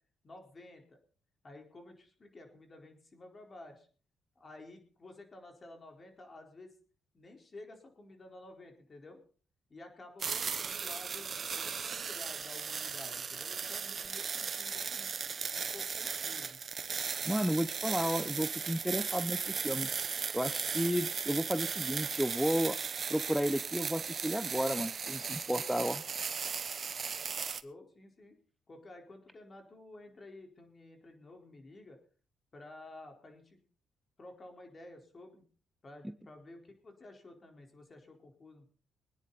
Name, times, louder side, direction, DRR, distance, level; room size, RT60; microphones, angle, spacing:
voice 1, 0.2-1.0 1.4-3.9 4.4-6.7 7.1-9.2 9.7-15.1 15.6-16.6 27.6-28.4 28.7-32.0 32.5-33.6 34.2-35.4 35.8-38.7, left 2 dB, 35° left, 3 dB, 4.3 m, -52 dB
sound 1, 10.2-27.6, right 6 dB, 45° right, 1.0 m, -37 dB
voice 2, 17.2-19.9 20.3-22.8 23.1-26.0, equal, ahead, 10 dB, 0.8 m, -32 dB
24.0 x 9.8 x 4.1 m, 0.40 s
cardioid pair, 90°, 0 cm